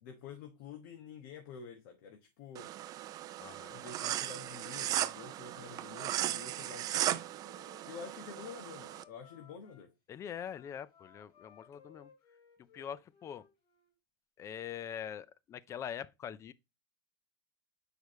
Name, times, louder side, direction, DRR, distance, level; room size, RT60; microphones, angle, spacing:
voice 1, 0.0-2.7 3.7-7.3 7.8-9.9, left 6 dB, 65° left, 1.3 m, -49 dB
sound 1, 2.6-9.0, right 13 dB, 35° right, 0.4 m, -37 dB
voice 2, 3.4-3.7 10.1-12.1 12.7-13.4 14.4-16.5, left 9 dB, 25° left, 0.4 m, -43 dB
Wind instrument woodwind instrument, 6.5-9.8 10.4-14.0, left 6 dB, 45° left, 2.5 m, -62 dB
6.4 x 4.9 x 3.0 m
supercardioid pair, 135°, 12 cm